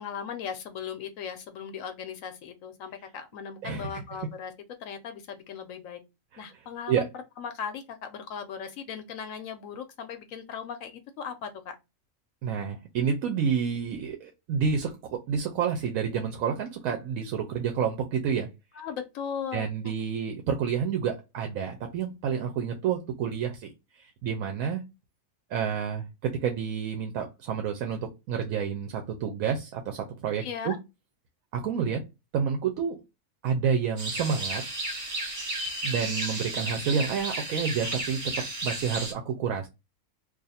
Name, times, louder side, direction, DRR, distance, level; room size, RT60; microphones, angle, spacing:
voice 1, 0.0-4.5 4.8-6.0 6.4-7.1 7.4-11.8 18.7-19.7 30.4-30.8, left 7 dB, 75° left, 1.0 m, -38 dB
voice 2, 3.6-4.0 6.3-6.4 6.9-7.1 12.4-18.5 19.5-23.7 24.0-24.8 25.5-30.7 31.5-32.0 32.3-33.0 33.4-34.7 35.8-39.7, right 7 dB, 85° right, 1.1 m, -29 dB
sound 1, 34.0-39.1, right 2 dB, 30° right, 0.7 m, -33 dB
2.5 x 2.4 x 4.1 m
omnidirectional pair, 1.4 m